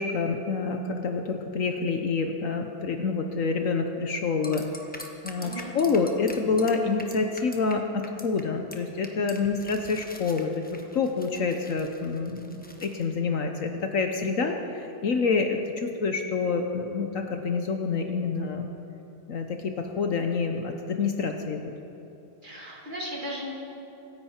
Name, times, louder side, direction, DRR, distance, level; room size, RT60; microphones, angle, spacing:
voice 1, 0.0-4.6 5.2-10.7 10.9-18.7 19.3-21.7, left 4 dB, 60° left, 4 dB, 1.2 m, -27 dB
sound 1, 4.4-7.7 8.0-8.4 8.7-8.8 9.0-13.0, left 1 dB, 5° left, 1.0 m, -44 dB
voice 2, 5.4-5.7 22.4-23.6, equal, 30° right, -3 dB, 2.5 m, -36 dB
25.0 x 10.5 x 4.4 m, 3.0 s
omnidirectional pair, 1.7 m